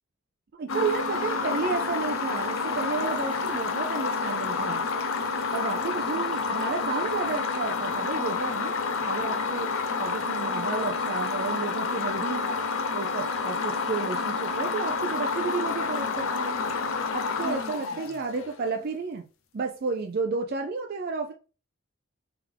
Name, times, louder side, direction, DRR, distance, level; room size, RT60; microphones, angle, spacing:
voice 1, 0.6-4.8 5.5-8.7 9.0-12.4 12.9-16.6 17.1-19.3 19.5-21.3, right 4 dB, 45° right, 0.4 m, -32 dB
sound 1, 0.7-18.7, left 4 dB, 75° left, 0.6 m, -29 dB
3.5 x 3.4 x 3.4 m
head